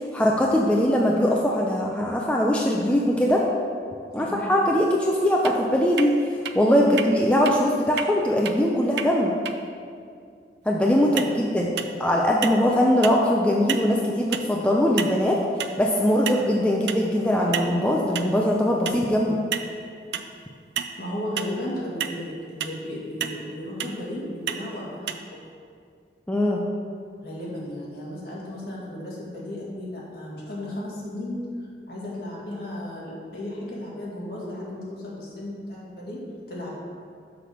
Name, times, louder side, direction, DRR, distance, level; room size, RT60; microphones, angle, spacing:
voice 1, 0.0-3.4 4.1-9.4 10.7-11.7 12.0-15.4 15.8-19.4 26.3-26.6, equal, 5° left, -2 dB, 0.4 m, -21 dB
voice 2, 4.2-4.5 6.8-7.0 11.0-11.4 21.0-25.4 27.2-36.7, left 1 dB, 60° left, -6 dB, 2.0 m, -35 dB
sound 1, 5.4-5.5 6.0-6.1 6.4-6.5 7.0-7.1 7.4-7.5 8.0-8.1 8.4-8.5 9.0-9.1 9.4-9.5 11.2-11.4 11.8-12.1 12.4-12.7 13.0-13.2 13.7-13.9 14.3-14.5 15.0-15.2 15.6-15.8 16.3-16.5 16.9-17.0 17.5-17.7 18.1-18.3 18.8-19.0 19.5-19.7 20.1-20.3 20.8-20.9 21.4-21.6 22.0-22.1 22.6-22.8 23.2-23.4 23.8-24.0 24.5-24.6 25.1-25.2, right 8 dB, 75° right, 0.4 m, -30 dB
5.9 x 5.0 x 6.5 m, 2.3 s
head